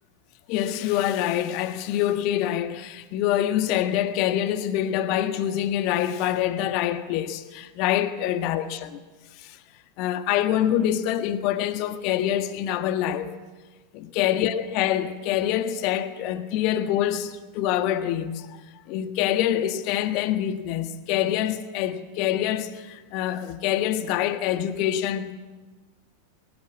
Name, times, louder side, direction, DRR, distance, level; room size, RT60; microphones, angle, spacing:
voice 1, 0.5-9.0 9.4-9.6 10.0-13.3 13.9-18.5 18.9-25.4, left 11 dB, 45° left, 1.5 m, -25 dB
22.0 x 18.0 x 8.5 m
figure-of-eight pair, 90°, 0 cm